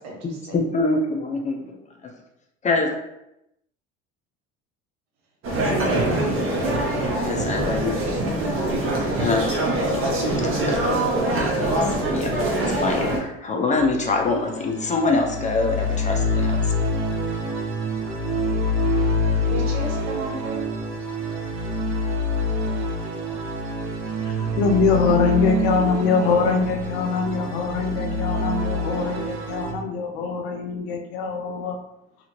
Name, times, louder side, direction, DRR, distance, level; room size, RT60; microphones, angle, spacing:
voice 1, 0.0-0.6 5.5-6.6 7.5-8.8 19.5-20.7, right 2 dB, 60° right, -2 dB, 1.2 m, -33 dB
voice 2, 0.5-1.8 2.6-3.0 7.2-8.0 9.1-9.4 10.4-11.1 11.6-11.7 12.1-16.7, left 3 dB, 25° left, 2 dB, 0.5 m, -25 dB
sound 1, 5.4-13.2, right 1 dB, 45° right, 0.9 m, -23 dB
sound 2, 13.8-29.7, left 1 dB, 85° right, 0.8 m, -26 dB
voice 3, 24.2-31.8, left 5 dB, 85° left, 3 dB, 0.6 m, -23 dB
2.7 x 2.4 x 2.9 m, 0.84 s
supercardioid pair, 90°, 31 cm